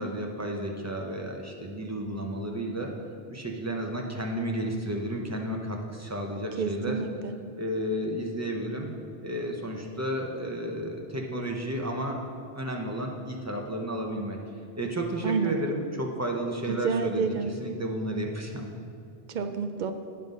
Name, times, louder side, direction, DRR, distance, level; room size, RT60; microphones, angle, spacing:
voice 1, 0.0-2.9 3.3-7.0 7.6-8.9 9.2-12.2 12.5-14.4 14.8-18.7, right 1 dB, 15° right, 1 dB, 0.7 m, -32 dB
voice 2, 6.6-7.3 15.2-15.6 16.7-17.5 19.3-19.9, right 5 dB, 55° right, 8 dB, 0.6 m, -29 dB
9.7 x 5.6 x 5.3 m, 2.3 s
omnidirectional pair, 1.1 m